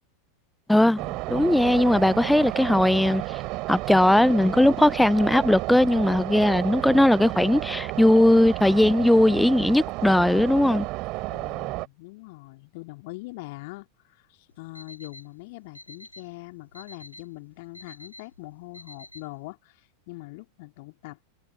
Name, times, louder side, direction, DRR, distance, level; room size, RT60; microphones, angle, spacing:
voice 1, 0.7-3.2 3.7-10.9, left 1 dB, 5° left, 0.4 m, -19 dB
sound 1, 1.0-11.9, right 22 dB, 40° right, 4.8 m, -32 dB
voice 2, 11.3-21.2, left 24 dB, 50° left, 3.0 m, -42 dB
Alarm, 14.5-19.5, left 1 dB, 85° left, 6.3 m, -49 dB
figure-of-eight pair, 90°, 0 cm